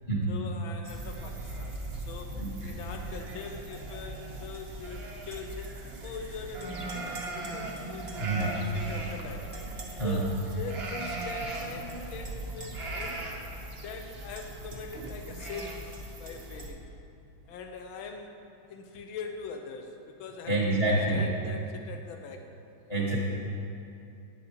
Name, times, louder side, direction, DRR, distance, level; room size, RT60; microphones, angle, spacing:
voice 1, 0.3-2.4 2.6-9.4 10.0-13.2 13.8-15.8 16.2-16.8 17.5-18.4 18.7-22.5, left 4 dB, 80° left, 4 dB, 1.4 m, -42 dB
sound 1, 0.8-16.7, right 2 dB, 60° right, 0.6 m, -39 dB
voice 2, 2.4-2.8 8.2-8.5 10.0-10.2 20.5-21.2 22.9-23.2, right 2 dB, 30° left, -4 dB, 0.6 m, -27 dB
10.5 x 8.2 x 2.8 m, 2.6 s
omnidirectional pair, 2.2 m